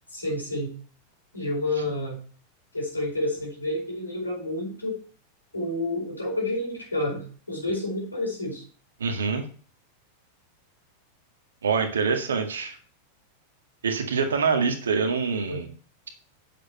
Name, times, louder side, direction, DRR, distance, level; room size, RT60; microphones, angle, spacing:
voice 1, 0.1-0.8 1.3-2.2 2.7-5.0 5.5-8.6 15.4-15.6, left 1 dB, 80° left, -1 dB, 4.7 m, -29 dB
voice 2, 9.0-9.4 11.6-12.7 13.8-15.7, right 5 dB, 70° right, 5 dB, 1.8 m, -25 dB
8.7 x 7.6 x 4.4 m, 0.42 s
figure-of-eight pair, 90°, 0 cm